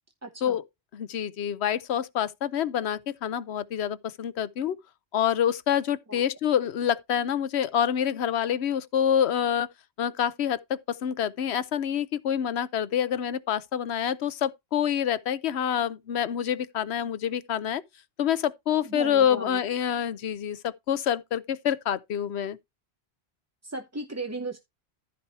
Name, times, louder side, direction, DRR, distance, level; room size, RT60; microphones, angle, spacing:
voice 1, 0.2-0.6 6.1-6.2 18.8-19.6 23.6-24.6, right 2 dB, 15° right, 0.8 m, -36 dB
voice 2, 0.9-4.8 5.1-9.7 10.0-17.8 18.2-22.6, left 9 dB, 90° left, 1.0 m, -27 dB
14.0 x 4.7 x 4.2 m
omnidirectional pair, 1.1 m